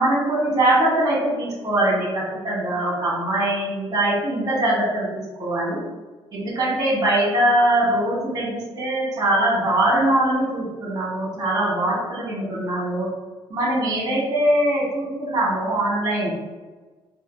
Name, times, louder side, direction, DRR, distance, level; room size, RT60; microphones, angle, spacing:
voice 1, 0.0-5.8 6.3-13.1 13.5-16.3, right 1 dB, 35° right, -4 dB, 1.4 m, -22 dB
3.7 x 2.5 x 2.7 m, 1.3 s
cardioid pair, 105°, 10 cm